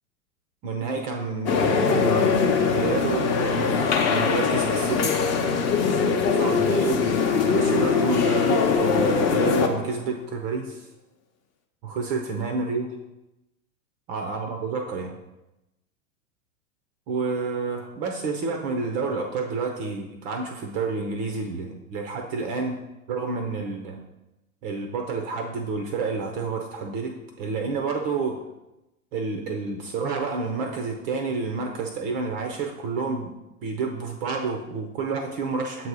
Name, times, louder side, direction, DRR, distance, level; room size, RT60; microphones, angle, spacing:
voice 1, 0.6-5.2 6.3-10.9 11.8-12.9 14.1-15.2 17.1-22.8 23.1-24.0 24.6-28.4 29.1-33.3 33.6-35.9, right 4 dB, 20° right, 3 dB, 0.3 m, -29 dB
sound 1, 1.5-9.9, left 6 dB, 35° left, 0.7 m, -22 dB
7.5 x 2.7 x 4.7 m, 0.96 s
hypercardioid pair, 100°, 44 cm